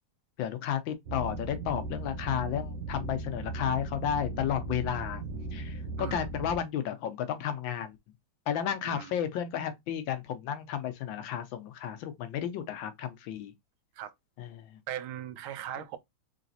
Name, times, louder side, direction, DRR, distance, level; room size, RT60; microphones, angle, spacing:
voice 1, 0.4-5.2 5.5-8.0 8.5-13.5 14.4-14.7, left 9 dB, 75° left, 1.3 m, -32 dB
sound 1, 1.1-6.6, right 2 dB, 65° right, 1.3 m, -37 dB
voice 2, 6.0-6.3 8.8-9.1 14.0-14.1 14.9-16.0, right 11 dB, 80° right, 1.5 m, -39 dB
3.9 x 3.4 x 2.6 m
omnidirectional pair, 2.3 m